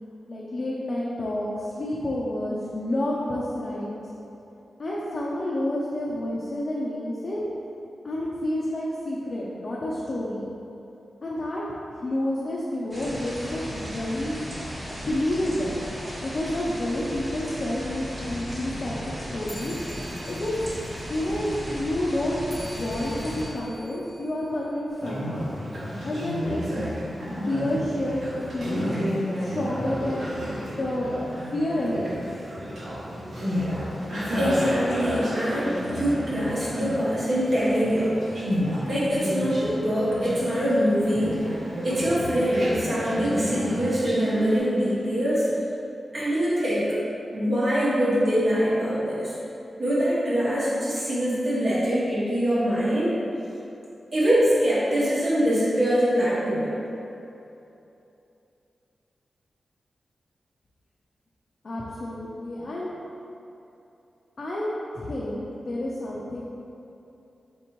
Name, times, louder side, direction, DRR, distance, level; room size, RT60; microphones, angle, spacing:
voice 1, 0.3-4.0 4.8-7.4 8.0-10.4 11.2-11.6 12.0-14.4 15.1-15.8 16.2-19.7 20.3-20.7 21.1-25.5 26.0-26.7 27.5-28.8 29.4-30.3 30.7-31.1 31.5-32.2 61.6-62.9 64.4-64.7 64.9-66.4, left 1 dB, 40° left, -6 dB, 0.5 m, -29 dB
sound 1, 12.9-23.5, equal, 25° right, 1.2 m, -36 dB
sound 2, 19.4-25.3, equal, 5° left, 0.7 m, -47 dB
Conversation, 24.9-44.6, equal, 80° right, 1.3 m, -31 dB
voice 2, 34.3-38.2 38.9-41.5 41.8-45.5 46.1-46.9 47.3-49.3 49.8-53.2 54.1-56.8, equal, 45° right, -9 dB, 1.0 m, -24 dB
4.2 x 3.5 x 3.0 m, 2.9 s
wide cardioid pair, 135°, 0 cm